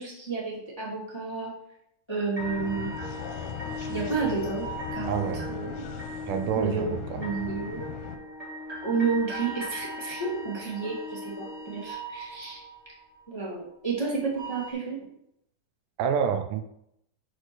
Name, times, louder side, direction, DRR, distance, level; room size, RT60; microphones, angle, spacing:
voice 1, 0.0-1.5 2.1-2.9 3.9-4.6 4.9-5.8 6.5-7.8 8.8-12.6 13.3-15.1, right 4 dB, 10° left, -5 dB, 1.3 m, -31 dB
sound 1, 2.4-8.2, left 8 dB, 75° left, 2.3 m, -39 dB
sound 2, 2.4-12.4, left 1 dB, 15° right, 1.3 m, -39 dB
sound 3, 2.7-7.1 9.3-13.6 14.3-14.7, right 6 dB, 40° right, 2.0 m, -44 dB
voice 2, 5.1-5.5 6.3-7.2 16.0-16.6, right 7 dB, 80° right, 7 dB, 2.1 m, -28 dB
6.3 x 4.8 x 6.1 m, 0.75 s
omnidirectional pair, 3.9 m